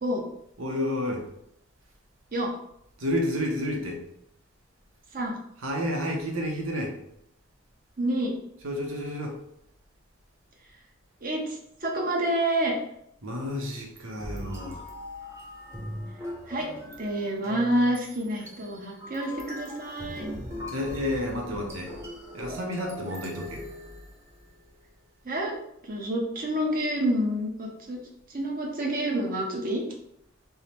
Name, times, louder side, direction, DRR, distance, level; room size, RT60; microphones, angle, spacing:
voice 1, 0.6-1.3 3.0-4.0 5.6-7.0 8.6-9.4 13.2-14.8 20.7-21.9 22.3-23.6, left 1 dB, 85° right, 1 dB, 0.9 m, -30 dB
voice 2, 8.0-8.4 11.2-12.7 16.5-16.7 17.0-20.3 25.2-25.6 25.8-28.0 28.3-29.8, right 1 dB, 45° right, 0 dB, 0.8 m, -28 dB
sound 1, 14.2-24.5, left 1 dB, 15° right, 0.8 m, -40 dB
3.5 x 2.1 x 4.3 m, 0.75 s
head